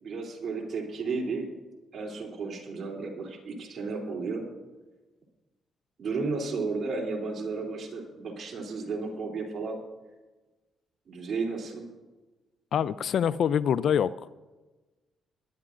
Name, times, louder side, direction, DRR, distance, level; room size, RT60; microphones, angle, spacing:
voice 1, 0.0-1.5 1.9-4.4 6.0-9.8 11.1-11.8, right 4 dB, 50° right, -1 dB, 3.0 m, -33 dB
voice 2, 12.7-14.1, left 8 dB, 65° left, 18 dB, 0.3 m, -25 dB
20.0 x 11.5 x 2.5 m, 1.2 s
cardioid pair, 90°, 0 cm